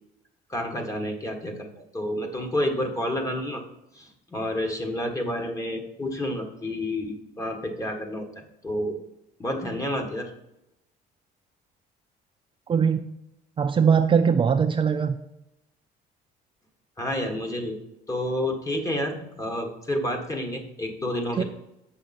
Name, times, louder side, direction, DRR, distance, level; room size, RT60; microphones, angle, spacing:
voice 1, 0.5-3.6 3.9-9.0 9.4-10.3 17.0-17.8 18.1-21.4, left 1 dB, 20° left, 3 dB, 1.6 m, -29 dB
voice 2, 12.7-13.0 13.6-15.2 21.4-21.5, right 6 dB, 30° right, 6 dB, 0.4 m, -21 dB
7.8 x 5.8 x 4.2 m, 0.87 s
cardioid pair, 110°, 17 cm